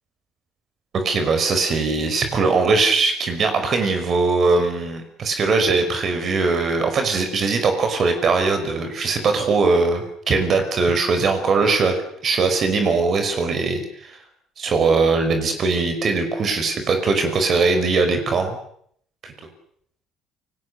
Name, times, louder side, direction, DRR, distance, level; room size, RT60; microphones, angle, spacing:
voice 1, 0.9-11.9 12.2-14.2 14.6-18.6 19.2-19.3, right 4 dB, 40° right, 7 dB, 5.3 m, -20 dB
28.5 x 19.5 x 6.8 m, 0.65 s
cardioid pair, 125°, 0 cm